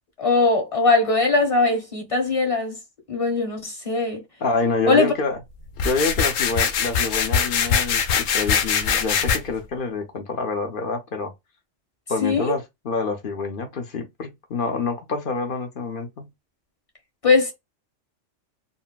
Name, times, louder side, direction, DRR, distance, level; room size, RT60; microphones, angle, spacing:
voice 1, 0.2-2.8 3.1-4.2 4.9-5.1 12.2-12.5 17.2-17.5, left 3 dB, 30° left, 1.1 m, -20 dB
voice 2, 4.4-5.4 5.8-11.3 12.1-16.3, left 3 dB, 55° left, 0.7 m, -27 dB
sound 1, 5.8-9.4, left 6 dB, 85° left, 1.0 m, -22 dB
3.9 x 2.0 x 2.2 m
omnidirectional pair, 1.3 m